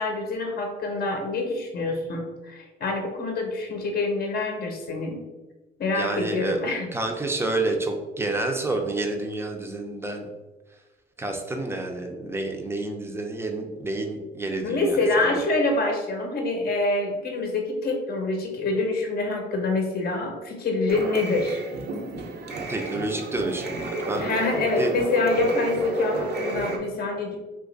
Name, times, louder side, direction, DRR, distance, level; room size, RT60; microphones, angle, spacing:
voice 1, 0.0-5.2 5.8-6.9 14.6-21.6 24.2-27.4, left 2 dB, 50° left, 2 dB, 0.7 m, -26 dB
voice 2, 5.9-6.6 6.9-10.3 11.2-15.4 22.7-24.3 24.8-24.9, right 2 dB, 10° right, 3 dB, 0.6 m, -29 dB
sound 1, 20.9-26.8, right 2 dB, 55° right, 0.6 m, -32 dB
2.9 x 2.5 x 3.9 m, 1.2 s
cardioid pair, 90°, 20 cm